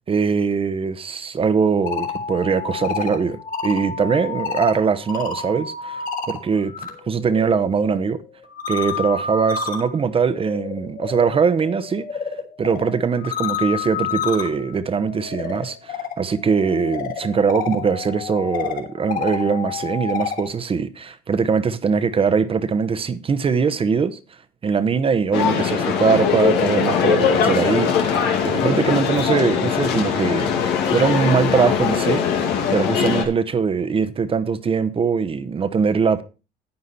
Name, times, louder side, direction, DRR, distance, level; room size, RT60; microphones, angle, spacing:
voice 1, 0.1-6.7 7.1-8.2 8.7-12.1 12.6-24.2 24.6-32.2 32.7-36.2, right 5 dB, 35° right, 1.0 m, -21 dB
sound 1, 1.7-6.9 7.2-20.5, left 6 dB, 55° left, 3.2 m, -30 dB
sound 2, 25.3-33.3, left 7 dB, 85° left, 2.0 m, -21 dB
9.6 x 9.5 x 4.2 m
cardioid pair, 110°, 17 cm